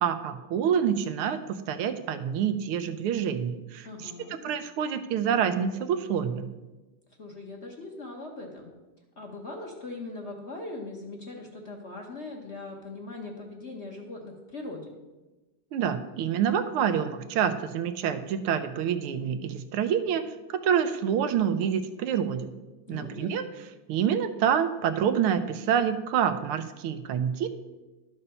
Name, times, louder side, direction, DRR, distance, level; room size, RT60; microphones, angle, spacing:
voice 1, 0.0-6.5 15.7-22.5 22.9-23.5 23.9-27.5, right 8 dB, 85° right, 9 dB, 1.6 m, -27 dB
voice 2, 3.8-4.4 7.2-8.7 9.2-14.9 22.9-23.4, left 2 dB, 40° left, 1 dB, 1.1 m, -40 dB
12.0 x 5.6 x 5.5 m, 1.1 s
omnidirectional pair, 2.4 m